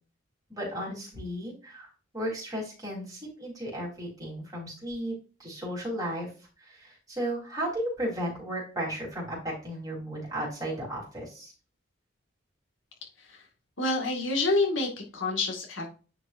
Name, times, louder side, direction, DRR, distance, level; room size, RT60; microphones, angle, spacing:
voice 1, 0.5-5.1 5.4-11.5, right 1 dB, 20° right, -4 dB, 3.8 m, -35 dB
voice 2, 13.8-15.9, left 2 dB, 75° left, 0 dB, 2.1 m, -27 dB
10.0 x 5.2 x 2.6 m, 0.35 s
head